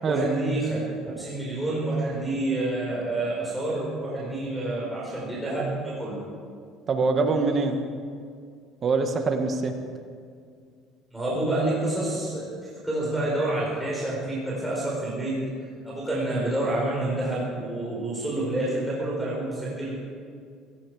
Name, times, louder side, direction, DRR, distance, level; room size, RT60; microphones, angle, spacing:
voice 1, 0.1-6.2 11.1-12.5 12.8-15.4 15.8-19.9, right 2 dB, 5° right, -7 dB, 4.5 m, -28 dB
voice 2, 6.9-7.7 8.8-9.7, right 4 dB, 35° right, 5 dB, 1.6 m, -24 dB
17.0 x 16.0 x 4.9 m, 2.2 s
cardioid pair, 130°, 0 cm